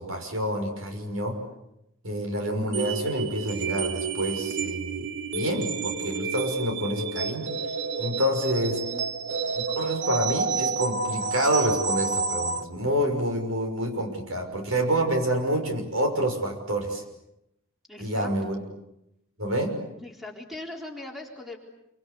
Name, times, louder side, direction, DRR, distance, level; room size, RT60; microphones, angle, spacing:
voice 1, 0.0-1.4 2.0-5.1 5.3-7.5 8.0-8.9 9.5-17.0 18.0-18.6 19.4-19.8, right 1 dB, 85° right, 5 dB, 6.1 m, -28 dB
sound 1, 2.7-12.6, right 4 dB, 60° right, 1.4 m, -30 dB
voice 2, 17.9-18.5 20.0-21.6, left 2 dB, ahead, 1 dB, 4.1 m, -40 dB
27.5 x 25.5 x 8.4 m, 0.84 s
head